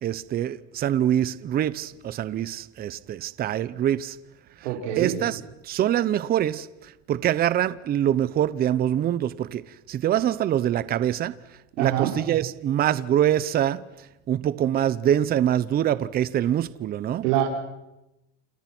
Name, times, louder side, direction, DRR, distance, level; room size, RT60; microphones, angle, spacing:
voice 1, 0.0-4.2 5.0-9.6 9.9-11.4 11.8-13.8 14.3-17.3, right 11 dB, 25° right, 0.8 m, -24 dB
voice 2, 4.6-5.2 11.8-12.1 17.2-17.4, right 12 dB, 70° right, 5.1 m, -24 dB
28.5 x 28.0 x 6.2 m
supercardioid pair, 145°, 38 cm